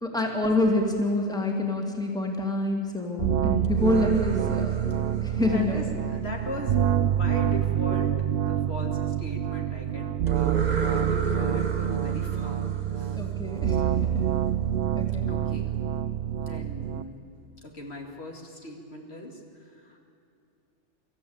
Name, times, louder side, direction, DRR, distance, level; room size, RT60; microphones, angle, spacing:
voice 1, 0.0-4.8 5.2-5.8 13.2-14.3 14.9-15.3, left 2 dB, 5° left, 1 dB, 2.4 m, -27 dB
sound 1, 3.2-17.0, right 10 dB, 60° right, 0.8 m, -27 dB
sound 2, 3.6-6.6 10.3-14.0, right 2 dB, 40° right, 1.1 m, -36 dB
voice 2, 5.4-12.7 12.9-13.2 13.7-14.1 15.3-15.8 16.3-17.2 17.6-20.0, left 1 dB, 60° left, 1 dB, 2.5 m, -39 dB
25.5 x 13.5 x 8.8 m, 2.6 s
omnidirectional pair, 1.2 m